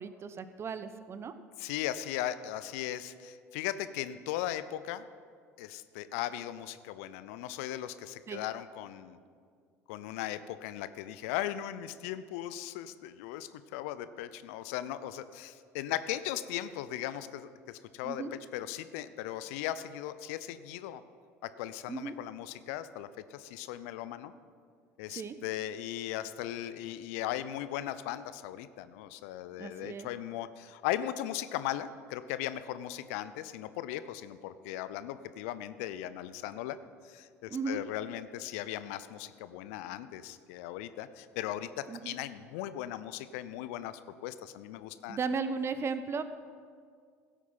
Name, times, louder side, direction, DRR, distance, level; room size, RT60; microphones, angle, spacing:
voice 1, 0.0-1.3 8.3-8.4 18.0-18.3 21.9-22.2 25.1-25.4 29.6-30.1 37.5-37.8 41.9-42.1 45.1-46.2, right 5 dB, 30° right, 12 dB, 0.9 m, -36 dB
voice 2, 1.6-5.1 5.6-9.2 9.9-18.2 18.5-21.0 21.6-24.3 25.0-36.8 37.0-41.7 42.0-45.2, left 12 dB, 65° left, 13 dB, 0.6 m, -38 dB
16.5 x 8.4 x 5.6 m, 2.1 s
figure-of-eight pair, 65°, 8 cm